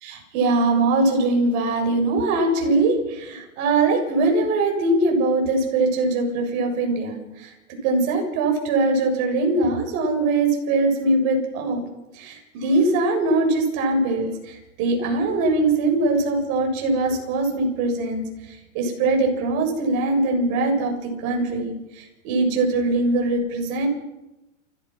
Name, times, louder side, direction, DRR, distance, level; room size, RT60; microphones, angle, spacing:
voice 1, 0.0-7.5 7.8-11.8 12.2-18.2 18.7-21.7 22.2-23.9, right 2 dB, 45° right, 2 dB, 7.2 m, -22 dB
29.0 x 14.5 x 6.2 m, 0.96 s
hypercardioid pair, 140°, 40 cm